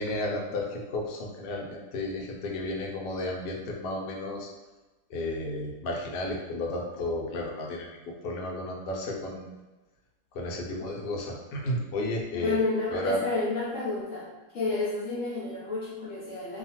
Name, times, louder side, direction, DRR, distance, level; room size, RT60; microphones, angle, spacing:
voice 1, 0.0-4.5 5.1-7.9 8.2-9.5 10.3-12.6 12.9-13.2, left 1 dB, 85° left, -1 dB, 1.2 m, -32 dB
voice 2, 12.3-14.3 14.5-16.6, left 3 dB, 65° left, -7 dB, 0.8 m, -30 dB
2.8 x 2.4 x 2.8 m, 1.2 s
omnidirectional pair, 1.8 m